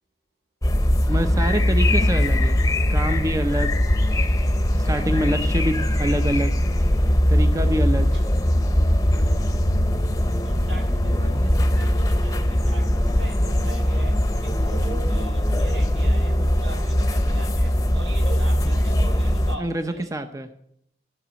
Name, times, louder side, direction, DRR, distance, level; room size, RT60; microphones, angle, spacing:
sound 1, 0.6-19.6, left 1 dB, 20° left, 0.9 m, -21 dB
voice 1, 1.1-2.5 2.9-3.7 4.7-6.6 7.3-8.2 19.6-20.5, right 1 dB, 20° right, 0.7 m, -26 dB
voice 2, 10.1-20.1, right 2 dB, 85° right, 6.1 m, -40 dB
14.5 x 6.1 x 8.1 m
head